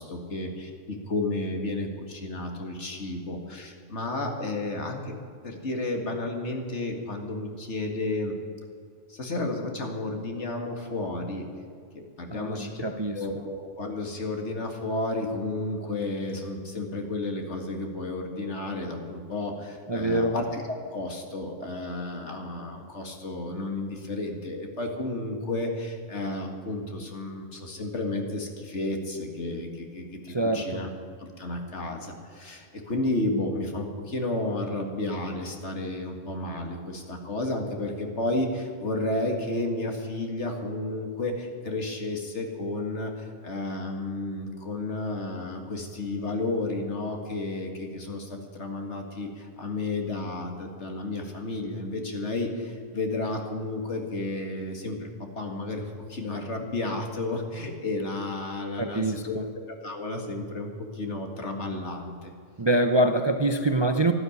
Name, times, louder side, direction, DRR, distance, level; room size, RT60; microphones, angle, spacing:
voice 1, 0.0-5.1 5.4-8.4 9.1-11.5 11.9-12.7 13.1-30.9 31.2-55.1 55.4-59.4 59.7-62.3, left 2 dB, 65° left, 3 dB, 2.2 m, -32 dB
voice 2, 12.3-13.4 19.9-20.4 30.3-30.8 58.8-59.5 62.6-64.1, right 1 dB, 30° right, 6 dB, 0.6 m, -25 dB
12.5 x 12.0 x 9.6 m, 2.2 s
omnidirectional pair, 1.3 m